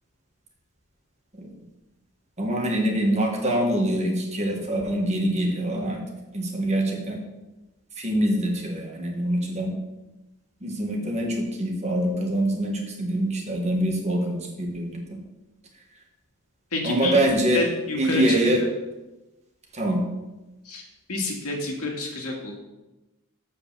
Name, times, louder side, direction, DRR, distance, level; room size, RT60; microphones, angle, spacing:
voice 1, 2.4-6.0 6.3-7.2 8.0-9.7 10.6-15.0 16.8-17.6 18.0-18.6 19.7-20.0, right 1 dB, 30° right, 0 dB, 1.5 m, -24 dB
voice 2, 16.7-17.2 17.5-18.7 20.6-20.8 21.1-22.6, left 2 dB, 75° left, 0 dB, 2.1 m, -29 dB
8.0 x 5.2 x 6.8 m, 1.1 s
head